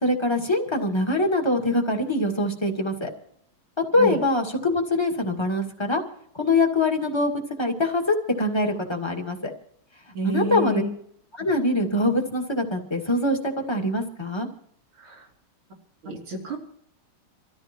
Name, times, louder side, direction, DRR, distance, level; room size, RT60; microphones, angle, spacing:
voice 1, 0.0-3.1 3.9-6.0 6.3-9.5 10.2-10.8 11.4-14.5, left 2 dB, 15° left, 1 dB, 2.0 m, -24 dB
voice 2, 10.1-10.9 15.0-15.3 16.0-16.6, equal, 85° right, -1 dB, 4.1 m, -29 dB
25.5 x 14.0 x 3.0 m, 0.69 s
omnidirectional pair, 2.3 m